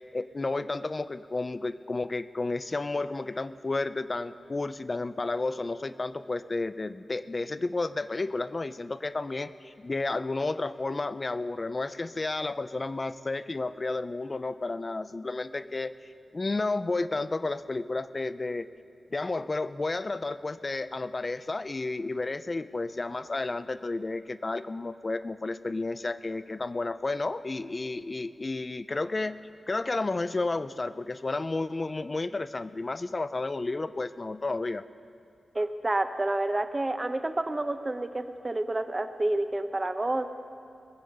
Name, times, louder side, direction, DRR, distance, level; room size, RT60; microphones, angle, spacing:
voice 1, 0.1-18.7 19.1-29.4 29.7-34.8, left 3 dB, 30° left, 14 dB, 0.4 m, -32 dB
voice 2, 35.5-40.4, right 2 dB, 20° right, 9 dB, 0.7 m, -29 dB
21.0 x 7.1 x 7.7 m, 2.4 s
wide cardioid pair, 145°, 0 cm